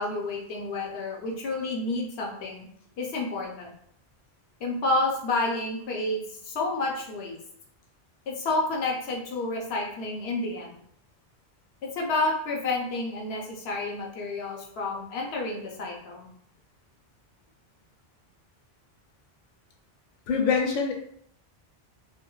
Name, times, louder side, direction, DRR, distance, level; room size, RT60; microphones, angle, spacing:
voice 1, 0.0-2.7 3.0-3.7 4.6-7.4 8.3-10.8 11.8-16.3, left 2 dB, 75° left, -1 dB, 0.9 m, -30 dB
voice 2, 20.3-20.9, left 5 dB, 60° left, 1 dB, 0.6 m, -24 dB
2.5 x 2.3 x 3.0 m, 0.66 s
omnidirectional pair, 1.1 m